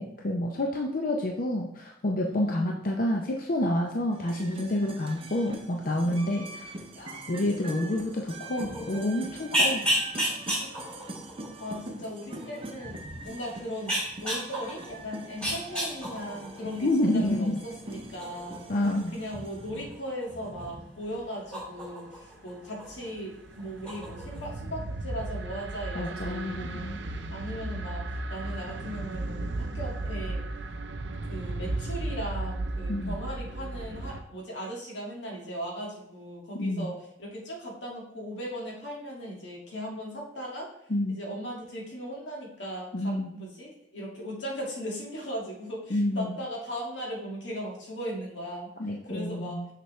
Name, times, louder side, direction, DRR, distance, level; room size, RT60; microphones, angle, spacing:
voice 1, 0.0-9.8 16.8-17.6 18.7-19.1 25.9-27.0 32.9-33.2 36.6-36.9 40.9-41.2 42.9-43.3 45.9-46.4 48.8-49.7, left 1 dB, 50° left, 1 dB, 0.6 m, -28 dB
voice 2, 2.2-2.7 4.9-5.0 10.6-10.7 11.6-13.0 13.2-18.7 19.1-26.9 27.3-30.4 31.3-40.7 41.1-48.7 49.0-49.6, equal, 90° left, -3 dB, 2.1 m, -38 dB
sound 1, 4.1-19.7, right 2 dB, 30° right, 0.6 m, -43 dB
sound 2, 8.6-23.1 23.4-24.5, equal, 5° left, 2.7 m, -34 dB
sound 3, 22.5-34.2, right 2 dB, 75° right, 0.6 m, -35 dB
6.5 x 5.8 x 3.2 m, 0.73 s
head